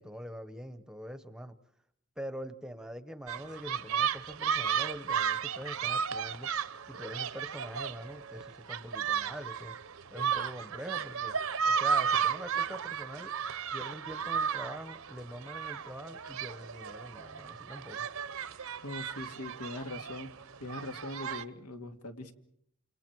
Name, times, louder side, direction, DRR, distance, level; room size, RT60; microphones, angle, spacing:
voice 1, 0.0-1.6 2.2-6.5 6.9-9.7 10.1-11.3 11.6-13.3 13.7-18.1, equal, 5° right, 11 dB, 0.9 m, -44 dB
sound 1, 3.3-21.4, right 7 dB, 65° right, 0.8 m, -34 dB
voice 2, 18.8-20.3 20.6-22.3, left 2 dB, 85° left, 5 dB, 2.2 m, -41 dB
29.0 x 28.0 x 4.7 m, 0.68 s
head